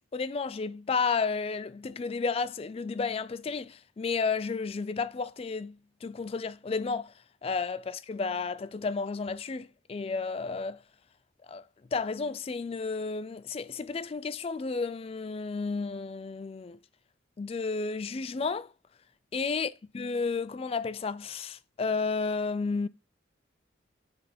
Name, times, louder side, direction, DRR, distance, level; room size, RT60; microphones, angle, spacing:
voice 1, 0.0-7.1 7.4-10.8 11.5-11.6 11.9-16.8 17.4-18.7 19.3-22.9, left 4 dB, 30° left, 0.3 m, -32 dB
10.0 x 3.6 x 4.2 m
head